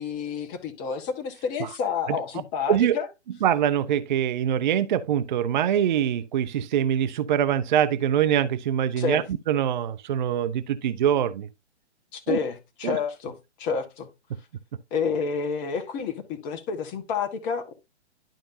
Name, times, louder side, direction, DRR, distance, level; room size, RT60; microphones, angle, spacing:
voice 1, 0.0-3.1 9.0-9.2 12.1-14.1 14.9-17.7, left 6 dB, 25° left, 1.4 m, -29 dB
voice 2, 3.4-11.5 12.3-12.4 12.8-13.0, right 10 dB, 40° right, 0.6 m, -24 dB
11.5 x 5.1 x 2.7 m
figure-of-eight pair, 130°, 35 cm